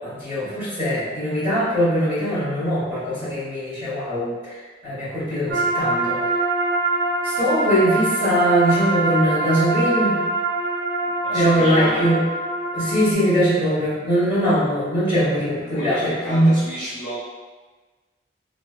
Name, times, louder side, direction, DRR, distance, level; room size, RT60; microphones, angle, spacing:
voice 1, 0.0-6.2 7.2-10.2 11.3-12.2 12.7-16.5, equal, 15° right, -14 dB, 1.4 m, -21 dB
sound 1, 5.5-13.1, right 2 dB, 60° right, 0.4 m, -24 dB
voice 2, 11.0-12.0 15.7-17.2, equal, 30° left, -12 dB, 1.0 m, -31 dB
3.2 x 2.2 x 2.2 m, 1.3 s
head